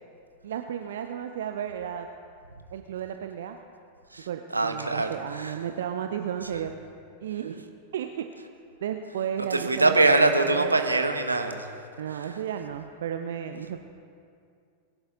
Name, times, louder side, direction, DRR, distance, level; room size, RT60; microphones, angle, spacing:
voice 1, 0.4-2.1 2.7-3.6 4.3-6.7 7.2-7.7 7.9-8.3 8.8-10.3 10.5-10.8 12.0-13.8, right 9 dB, 60° right, 6 dB, 0.6 m, -33 dB
voice 2, 4.5-5.6 6.4-6.7 9.5-12.4, right 2 dB, 80° right, 6 dB, 1.1 m, -24 dB
21.5 x 11.5 x 3.8 m, 2.4 s
figure-of-eight pair, 90°, 0 cm